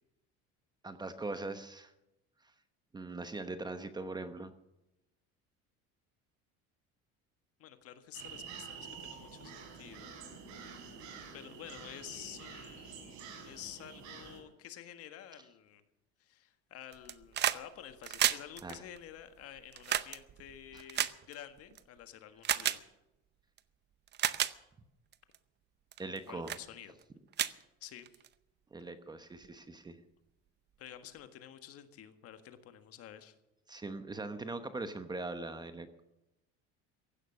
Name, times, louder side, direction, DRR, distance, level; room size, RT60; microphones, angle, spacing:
voice 1, 0.8-1.9 2.9-4.5 18.6-18.8 26.0-26.5 28.7-30.0 33.7-36.0, right 3 dB, 15° right, 9 dB, 1.0 m, -41 dB
voice 2, 7.6-10.1 10.6-11.0 11.3-15.8 16.2-22.8 26.3-27.0 27.8-28.2 30.8-33.4, left 10 dB, 50° left, 9 dB, 1.7 m, -50 dB
sound 1, 8.1-14.4, right 6 dB, 70° right, 5.4 m, -48 dB
sound 2, 16.9-17.6 17.9-21.8 22.4-22.8 23.6-23.7 24.1-24.5 25.1-25.4 25.9-26.2 26.5-26.6 27.0-27.1 27.3-28.3 29.4-29.5, right 11 dB, 35° right, 0.7 m, -32 dB
16.0 x 11.5 x 6.5 m, 0.91 s
cardioid pair, 145°, 30 cm